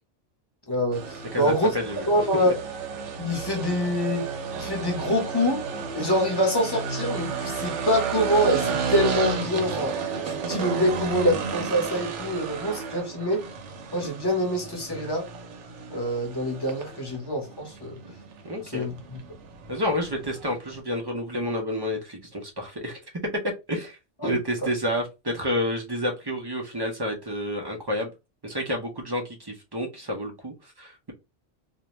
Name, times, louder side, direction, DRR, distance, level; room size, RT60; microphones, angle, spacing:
voice 1, 0.7-1.7 2.1-2.6 3.2-4.3 4.5-5.6 5.9-9.9 10.2-13.5 13.9-15.3 15.9-18.0 18.7-19.2 24.2-24.4, equal, 25° left, 0.8 m, -25 dB
sound 1, 0.9-20.8, right 6 dB, 80° right, 0.9 m, -32 dB
voice 2, 1.3-2.1 2.3-2.4 18.4-18.9 19.7-23.0 23.7-28.1 28.4-31.1, left 1 dB, 35° right, 0.4 m, -30 dB
2.4 x 2.1 x 2.9 m
omnidirectional pair, 1.2 m